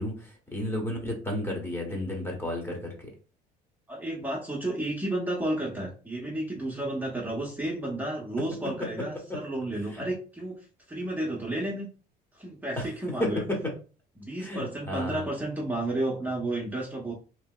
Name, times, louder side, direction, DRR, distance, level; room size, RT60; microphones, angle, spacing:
voice 1, 0.0-2.9 9.9-10.0 12.8-12.9 13.2-13.6 14.4-15.3, left 1 dB, 15° left, 0 dB, 1.0 m, -32 dB
voice 2, 3.9-11.9 12.3-13.4 14.2-17.1, right 1 dB, 10° right, -3 dB, 0.8 m, -32 dB
2.8 x 2.7 x 2.2 m, 0.36 s
cardioid pair, 110°, 17 cm